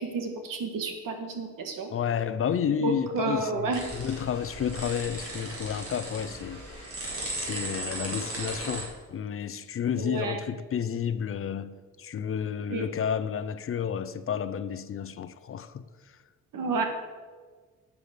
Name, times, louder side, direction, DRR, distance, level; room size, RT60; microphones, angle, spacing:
voice 1, 0.0-1.9 2.8-3.8 10.0-10.4 12.7-12.9 16.5-16.8, right 3 dB, 75° right, 1.9 m, -30 dB
voice 2, 1.9-16.2, left 8 dB, 45° left, 0.5 m, -31 dB
sound 1, 3.7-8.8, right 2 dB, 45° right, 3.9 m, -37 dB
12.0 x 8.4 x 6.6 m
wide cardioid pair, 175°, 33 cm